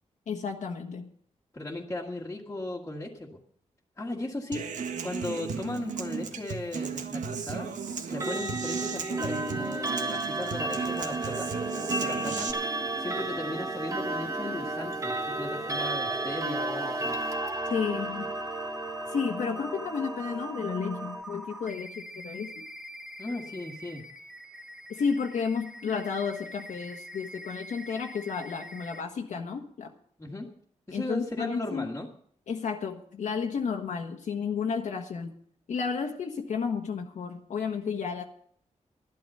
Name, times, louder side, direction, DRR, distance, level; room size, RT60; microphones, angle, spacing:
voice 1, 0.3-1.1 17.7-18.3 19.1-22.5 24.9-29.9 30.9-31.9 32.5-35.3 35.7-38.2, left 6 dB, 80° left, 2 dB, 1.5 m, -32 dB
voice 2, 1.5-3.4 4.0-4.6 5.0-7.7 8.1-11.5 11.9-17.1 23.2-24.0 30.2-30.5 30.9-32.1, left 2 dB, 20° left, -3 dB, 1.8 m, -37 dB
Human voice / Acoustic guitar, 4.5-12.5, right 6 dB, 90° right, 1.6 m, -35 dB
Clock, 8.1-21.2, right 2 dB, 25° right, 1.4 m, -33 dB
sound 1, 11.1-29.0, equal, 5° right, 1.2 m, -44 dB
14.0 x 12.0 x 5.6 m, 0.62 s
wide cardioid pair, 170°, 13 cm